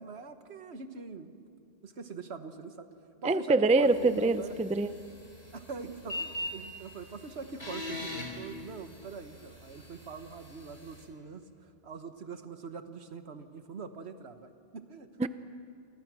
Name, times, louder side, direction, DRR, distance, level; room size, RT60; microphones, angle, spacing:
voice 1, 0.0-1.5 1.8-2.9 3.2-4.6 5.5-11.5 11.8-15.1, right 5 dB, 75° right, 8 dB, 1.5 m, -43 dB
voice 2, 3.2-4.9 15.2-15.3, right 3 dB, 10° right, 12 dB, 0.4 m, -25 dB
sound 1, 3.8-11.0, left 1 dB, 70° left, 4.7 m, -43 dB
29.0 x 24.0 x 6.2 m, 2.4 s
omnidirectional pair, 1.1 m